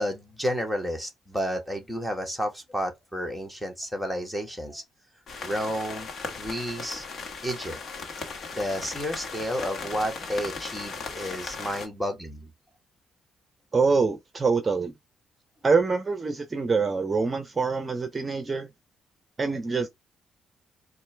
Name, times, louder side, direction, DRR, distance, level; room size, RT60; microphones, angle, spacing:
voice 1, 0.0-4.8 5.4-7.1 7.4-7.8 8.5-12.5, equal, 5° left, 1.4 m, -31 dB
sound 1, 5.3-11.9, left 4 dB, 55° left, 1.3 m, -37 dB
voice 2, 13.7-14.9 15.6-18.7 19.4-19.9, right 4 dB, 30° right, 0.7 m, -25 dB
4.3 x 2.5 x 3.3 m
cardioid pair, 90°, 0 cm